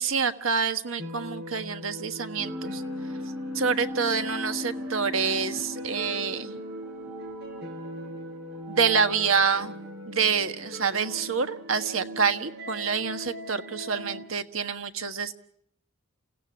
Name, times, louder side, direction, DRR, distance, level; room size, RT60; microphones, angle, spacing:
voice 1, 0.0-2.8 3.5-6.6 8.7-9.8 10.1-15.3, right 5 dB, 75° right, 9 dB, 1.5 m, -27 dB
sound 1, 1.0-14.2, right 1 dB, 50° right, 5.3 m, -40 dB
sound 2, 2.4-9.9, left 1 dB, 5° right, 5.9 m, -39 dB
29.5 x 16.5 x 8.6 m, 0.71 s
head